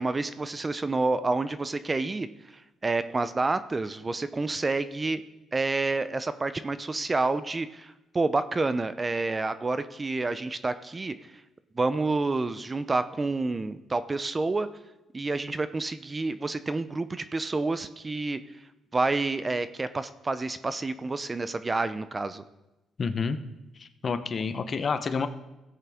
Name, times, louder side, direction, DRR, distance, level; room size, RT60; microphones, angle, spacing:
voice 1, 0.0-2.3 2.5-5.2 5.5-11.3 11.7-14.7 15.1-18.4 18.9-22.4, right 3 dB, 25° right, 13 dB, 0.5 m, -29 dB
voice 2, 23.0-23.4 23.8-25.3, left 5 dB, 45° left, 10 dB, 0.7 m, -29 dB
16.0 x 8.4 x 3.5 m, 0.99 s
cardioid pair, 90°, 0 cm